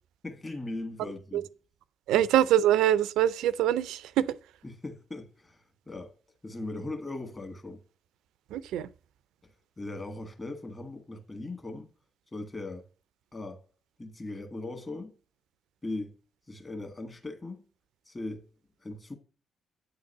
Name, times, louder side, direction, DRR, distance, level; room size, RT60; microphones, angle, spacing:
voice 1, 0.2-1.5 2.1-2.2 4.6-5.6 5.9-6.2 6.4-7.8 9.8-11.9 12.3-12.9 13.3-13.6 14.0-15.1 15.8-16.2 16.5-17.6 18.1-18.4 18.8-19.2, left 2 dB, 30° left, 1.8 m, -39 dB
voice 2, 2.1-4.3 8.5-8.9, right 11 dB, 75° right, 0.3 m, -24 dB
8.6 x 3.9 x 5.5 m
hypercardioid pair, 45°, 0 cm